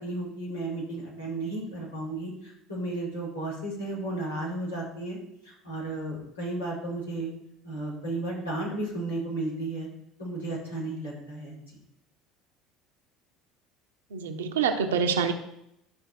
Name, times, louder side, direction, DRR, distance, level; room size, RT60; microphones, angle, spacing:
voice 1, 0.0-5.2 5.4-7.3 7.6-9.9 10.2-11.6, right 2 dB, 85° left, -9 dB, 4.4 m, -33 dB
voice 2, 14.1-15.3, right 6 dB, 70° right, 6 dB, 1.0 m, -26 dB
12.0 x 5.5 x 4.4 m, 0.76 s
figure-of-eight pair, 65°, 0 cm